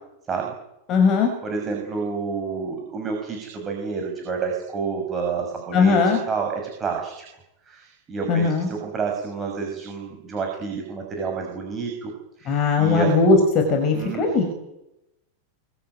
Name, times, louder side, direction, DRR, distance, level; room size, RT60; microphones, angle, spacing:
voice 1, 0.9-1.3 5.7-6.2 8.3-8.7 12.5-14.4, left 4 dB, 35° left, 4 dB, 5.8 m, -19 dB
voice 2, 1.4-7.3 7.7-12.1 12.4-13.2 13.9-14.4, right 5 dB, 20° right, 2 dB, 6.2 m, -29 dB
24.5 x 23.5 x 9.1 m, 0.88 s
figure-of-eight pair, 90°, 0 cm